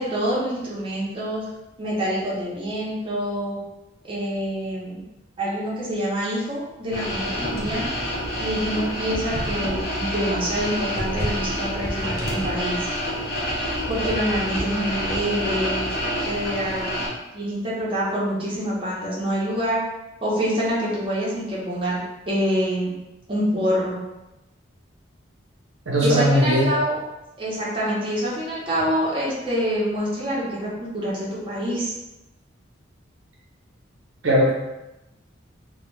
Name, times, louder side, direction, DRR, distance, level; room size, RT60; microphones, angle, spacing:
voice 1, 0.0-1.4 1.8-3.6 4.0-5.0 5.4-7.9 8.4-12.9 13.9-17.0 17.3-19.8 20.2-22.0 22.3-23.0 23.3-24.0 26.0-26.9 27.4-31.9, equal, 25° right, -7 dB, 0.7 m, -26 dB
sound 1, 6.9-17.1, equal, 50° left, 0.6 m, -27 dB
voice 2, 25.9-26.8 34.2-34.5, equal, 85° right, -3 dB, 0.7 m, -19 dB
2.2 x 2.2 x 3.1 m, 0.97 s
head